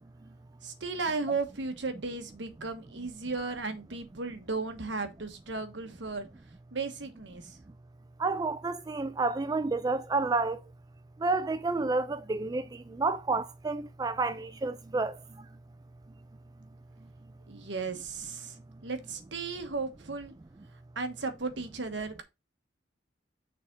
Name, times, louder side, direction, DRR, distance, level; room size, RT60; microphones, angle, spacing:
voice 1, 0.6-6.3 6.7-7.5 17.5-18.6 18.8-20.3 21.0-22.2, right 4 dB, 70° right, 1.2 m, -35 dB
voice 2, 8.2-10.6 11.2-15.1, right 3 dB, 20° right, 0.4 m, -30 dB
6.6 x 3.5 x 5.1 m
head